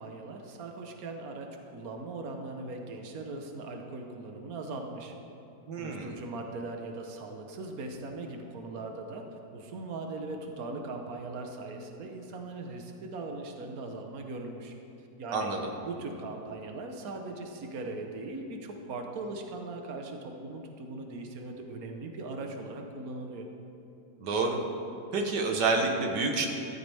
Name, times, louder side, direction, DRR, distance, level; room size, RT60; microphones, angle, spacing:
voice 1, 0.0-5.1 5.8-9.2 9.5-14.7 15.2-15.5 15.8-23.5, right 2 dB, 60° right, 3 dB, 1.5 m, -39 dB
voice 2, 5.7-6.1 15.3-15.7 24.2-24.6 25.1-26.5, right 3 dB, 75° right, 2 dB, 1.9 m, -28 dB
14.5 x 13.5 x 3.5 m, 2.9 s
omnidirectional pair, 1.8 m